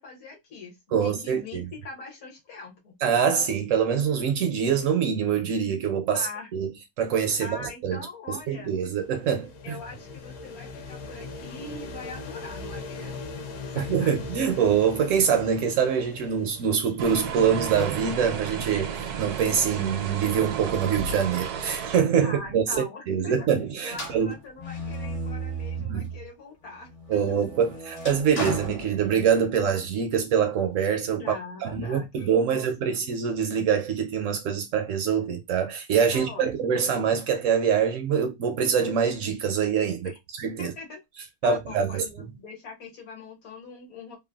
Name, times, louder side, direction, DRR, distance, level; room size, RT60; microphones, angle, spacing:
voice 1, 0.0-2.9 6.1-6.5 7.4-8.7 9.6-13.3 13.6-14.2 22.2-23.5 23.8-27.4 31.2-32.9 36.1-36.8 40.0-40.2 40.6-41.0 41.4-44.2, left 3 dB, 65° left, 1.5 m, -42 dB
voice 2, 0.9-1.6 3.0-6.3 6.5-6.7 7.0-8.0 8.3-9.8 13.7-18.9 19.2-24.3 25.8-26.1 27.1-31.2 31.6-40.1 40.4-40.7 41.4-42.3, right 7 dB, 70° right, 0.8 m, -24 dB
sound 1, 8.7-17.5, left 3 dB, 90° left, 1.2 m, -40 dB
sound 2, 17.0-22.0, right 7 dB, 85° right, 1.1 m, -33 dB
sound 3, 23.9-26.3 26.8-29.6, right 2 dB, 45° left, 1.0 m, -35 dB
3.2 x 2.1 x 2.2 m
omnidirectional pair, 1.6 m